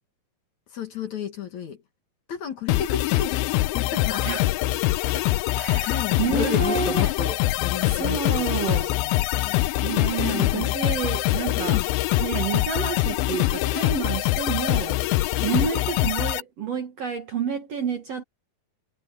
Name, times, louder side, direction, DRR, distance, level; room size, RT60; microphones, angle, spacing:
voice 1, 0.7-1.8 2.3-3.5 3.7-4.3 5.0-5.2 5.5-9.6 10.2-10.7 11.5-11.9 15.4-15.6, left 8 dB, 55° left, 2.7 m, -32 dB
sound 1, 2.7-16.4, left 17 dB, 80° left, 2.3 m, -24 dB
voice 2, 5.5-7.1 7.9-8.9 9.8-11.8 12.2-15.0 15.4-18.2, right 7 dB, 55° right, 1.9 m, -29 dB
omnidirectional pair, 4.6 m